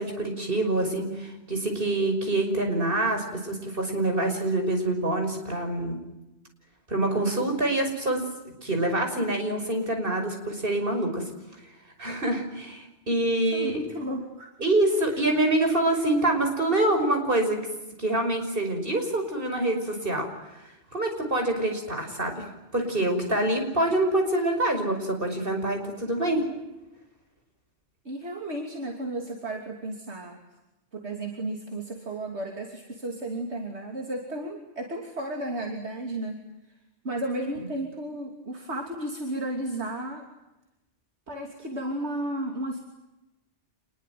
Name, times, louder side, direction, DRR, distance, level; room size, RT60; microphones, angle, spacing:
voice 1, 0.0-6.0 6.9-8.2 8.6-11.2 12.0-13.8 14.6-17.6 18.0-20.3 20.9-26.5, right 1 dB, 50° right, 4 dB, 5.9 m, -26 dB
voice 2, 13.5-14.5 15.1-15.4 28.0-30.4 30.9-36.4 36.7-36.8 37.0-40.3 41.3-42.8, right 1 dB, 65° right, 2 dB, 3.3 m, -33 dB
27.5 x 21.5 x 9.4 m, 0.97 s
omnidirectional pair, 1.2 m